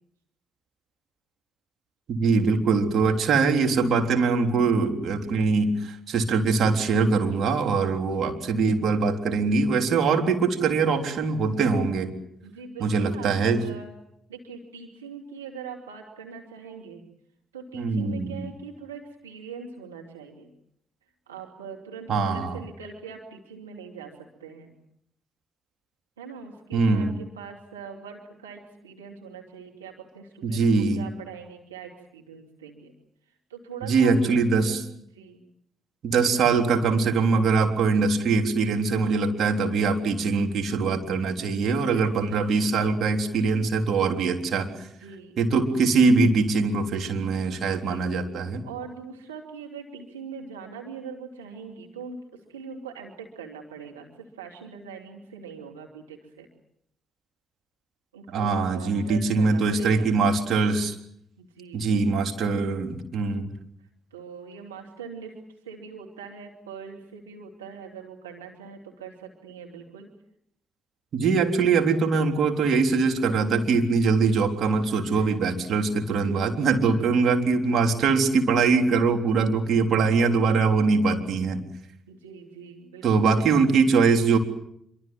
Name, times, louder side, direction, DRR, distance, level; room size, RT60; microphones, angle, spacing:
voice 1, 2.1-12.1 12.8-13.6 17.7-18.4 22.1-22.5 26.7-27.1 30.4-31.1 33.9-34.8 36.0-44.7 45.4-48.6 58.3-61.0 61.7-63.5 71.1-81.6 83.0-84.4, right 4 dB, 60° right, 4 dB, 3.6 m, -22 dB
voice 2, 8.0-8.4 12.4-13.9 14.3-17.0 17.5-20.5 21.3-24.7 26.2-32.9 33.5-35.4 41.5-42.5 44.8-45.4 47.4-48.0 48.6-56.5 58.1-60.1 61.4-62.1 64.1-65.4 65.6-70.1 75.0-75.6 76.1-76.4 76.9-77.2 82.1-83.7, right 6 dB, 90° right, 0 dB, 2.5 m, -42 dB
26.5 x 24.0 x 7.8 m, 0.74 s
figure-of-eight pair, 40°, 0 cm